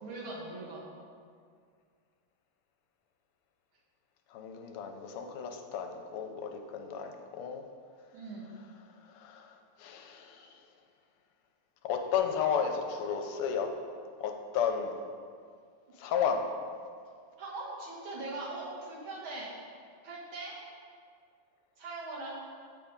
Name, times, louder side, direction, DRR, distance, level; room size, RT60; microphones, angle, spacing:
voice 1, 0.0-0.9 8.1-8.5 17.4-19.5 20.0-20.6 21.8-22.3, right 2 dB, 65° right, -4 dB, 2.1 m, -41 dB
voice 2, 4.3-7.6 9.1-9.5 9.8-10.5 11.8-13.7 14.2-15.0 16.0-16.4, left 7 dB, 85° left, 4 dB, 1.6 m, -33 dB
8.3 x 3.6 x 5.1 m, 2.1 s
omnidirectional pair, 2.4 m